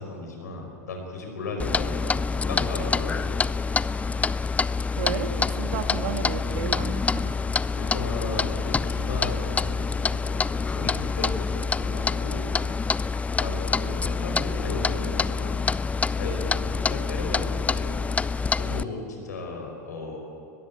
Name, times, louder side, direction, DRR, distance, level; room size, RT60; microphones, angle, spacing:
voice 1, 0.0-3.4 7.8-12.5 13.4-15.6 16.1-18.0 18.6-20.2, left 3 dB, 80° left, 2 dB, 5.2 m, -35 dB
Clock, 1.6-18.8, left 4 dB, 15° left, 0.5 m, -26 dB
voice 2, 5.0-7.4, right 7 dB, 65° right, 7 dB, 1.9 m, -32 dB
21.0 x 15.0 x 9.5 m, 2.8 s
hypercardioid pair, 85°, 9 cm